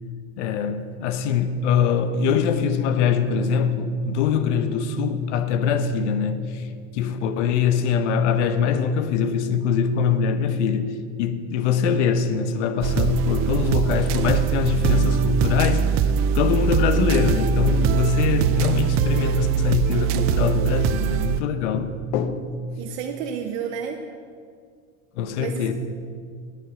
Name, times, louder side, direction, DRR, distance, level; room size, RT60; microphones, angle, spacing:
voice 1, 0.4-6.7 6.9-22.5 25.2-25.7, left 6 dB, 80° left, 0.9 m, -23 dB
sound 1, 12.8-21.4, right 9 dB, 40° right, 0.4 m, -22 dB
voice 2, 22.8-24.0 25.4-25.7, right 7 dB, 70° right, 0.9 m, -31 dB
9.8 x 8.9 x 5.9 m
supercardioid pair, 135°, 34 cm